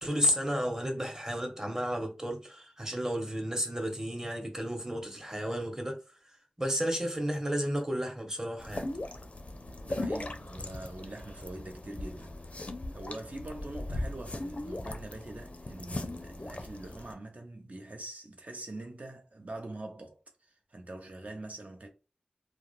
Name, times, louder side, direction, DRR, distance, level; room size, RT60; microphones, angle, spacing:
voice 1, 0.0-6.0 6.6-8.9, equal, 20° right, 1.0 m, -32 dB
sound 1, 8.6-17.1, left 2 dB, 50° left, 0.4 m, -39 dB
voice 2, 9.8-21.9, right 2 dB, 60° right, 0.7 m, -44 dB
2.4 x 2.0 x 3.0 m
wide cardioid pair, 40°, 3 cm